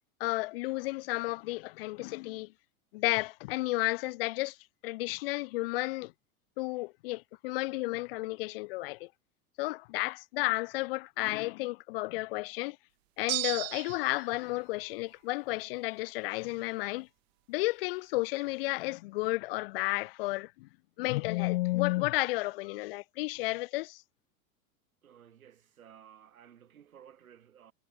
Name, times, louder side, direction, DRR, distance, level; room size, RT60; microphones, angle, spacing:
voice 1, 0.2-2.5 2.9-4.6 4.8-6.1 6.6-9.1 9.6-12.8 13.2-17.1 17.5-20.7 21.0-24.0, left 22 dB, 45° left, 0.4 m, -32 dB
sound 1, 13.3-14.3, right 21 dB, 50° right, 0.5 m, -34 dB
voice 2, 25.0-27.7, right 9 dB, 75° right, 4.8 m, -56 dB
figure-of-eight pair, 90°, 43 cm